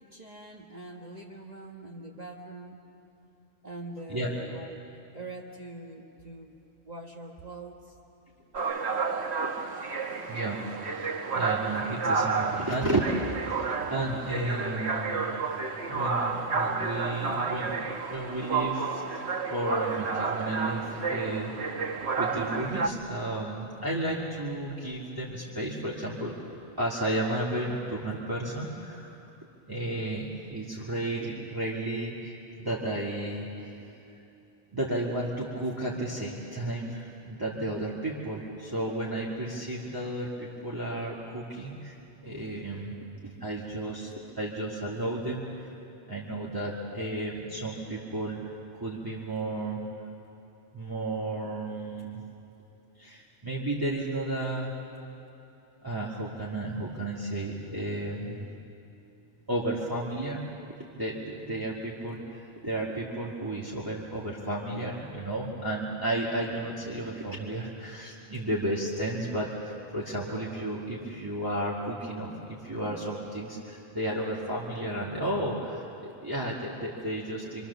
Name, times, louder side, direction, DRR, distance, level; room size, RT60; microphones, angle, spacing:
voice 1, 0.0-2.9 3.6-4.8 5.1-6.6 6.8-8.0, right 2 dB, 40° right, -1 dB, 1.4 m, -43 dB
sound 1, 8.5-22.9, right 4 dB, 70° right, 1.5 m, -31 dB
voice 2, 10.3-15.6 15.9-17.8 18.1-19.0 19.5-21.9 22.1-29.2 29.7-33.7 34.7-41.9 42.2-42.9 43.2-45.7 46.1-48.4 48.7-49.8 50.7-52.2 53.0-54.7 55.8-58.5 59.5-60.4 60.9-77.7, right 1 dB, 20° right, -6 dB, 2.3 m, -33 dB
27.5 x 24.0 x 7.0 m, 2.8 s
omnidirectional pair, 1.1 m